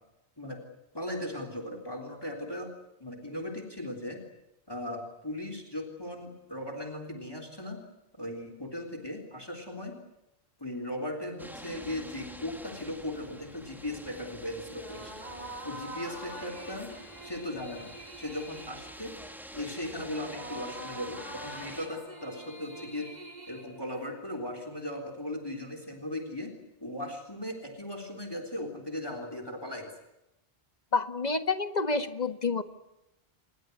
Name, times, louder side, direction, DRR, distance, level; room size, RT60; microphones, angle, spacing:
voice 1, 0.9-2.7 3.0-4.2 4.7-7.8 8.1-10.0 10.6-15.1 15.6-16.9 17.2-17.9 18.2-19.2 19.5-23.1 23.5-26.5 26.8-29.9, left 1 dB, 25° left, 6 dB, 3.7 m, -38 dB
sound 1, 11.4-21.9, equal, ahead, 2.8 m, -47 dB
sound 2, 14.7-24.4, right 1 dB, 40° right, 4.0 m, -45 dB
voice 2, 30.9-32.6, left 4 dB, 40° left, 10 dB, 1.7 m, -28 dB
28.0 x 21.5 x 8.0 m, 0.90 s
omnidirectional pair, 1.1 m